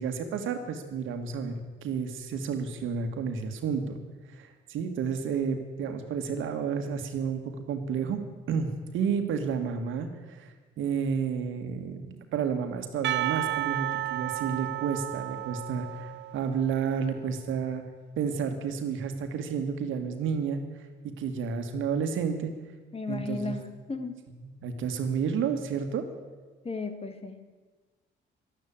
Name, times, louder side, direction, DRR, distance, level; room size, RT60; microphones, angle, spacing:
voice 1, 0.0-1.5 1.8-4.0 4.3-8.2 8.5-10.5 10.8-17.8 18.2-20.6 21.2-22.5 23.1-23.6 24.4-26.1, right 6 dB, 85° right, 6 dB, 1.9 m, -31 dB
Percussion, 13.0-16.9, right 15 dB, 65° right, 0.5 m, -32 dB
voice 2, 22.9-24.2 26.6-27.5, left 3 dB, 30° left, 8 dB, 1.7 m, -35 dB
12.0 x 12.0 x 8.7 m, 1.3 s
cardioid pair, 90°, 20 cm